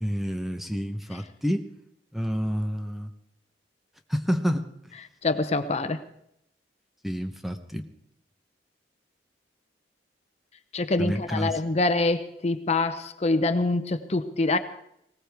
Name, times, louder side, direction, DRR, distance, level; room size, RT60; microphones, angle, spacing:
voice 1, 0.0-1.7 2.1-3.1 4.1-4.7 7.0-7.8 11.0-11.6, equal, ahead, 6 dB, 0.8 m, -28 dB
voice 2, 5.2-6.0 10.7-14.6, left 2 dB, 35° left, 10 dB, 0.8 m, -25 dB
19.5 x 18.0 x 3.5 m, 0.75 s
head